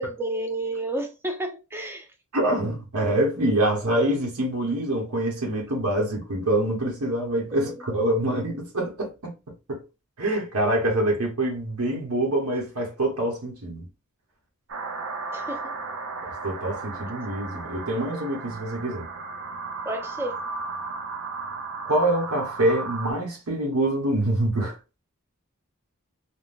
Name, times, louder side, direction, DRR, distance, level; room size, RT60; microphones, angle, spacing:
voice 1, 0.0-2.1 7.6-7.7 15.3-15.7 19.8-20.4, right 1 dB, 10° right, 0.4 m, -31 dB
voice 2, 2.3-9.3 9.7-9.8 10.2-13.8 16.4-19.1 21.9-24.8, right 1 dB, 90° right, 1.0 m, -25 dB
sound 1, 14.7-23.1, right 4 dB, 60° right, 0.7 m, -35 dB
3.6 x 2.2 x 2.5 m
head